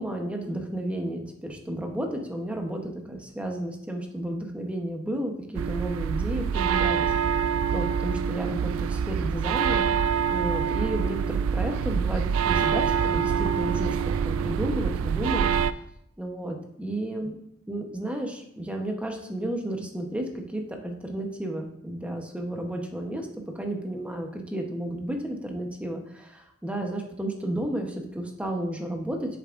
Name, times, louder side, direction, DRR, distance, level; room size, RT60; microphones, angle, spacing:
voice 1, 0.0-9.8 10.3-14.0 14.2-15.5 16.2-17.4 17.7-23.3 23.5-29.4, right 1 dB, 5° right, 2 dB, 0.9 m, -32 dB
sound 1, 5.5-15.7, right 7 dB, 85° right, 0.3 m, -25 dB
8.3 x 6.9 x 2.5 m, 0.74 s
head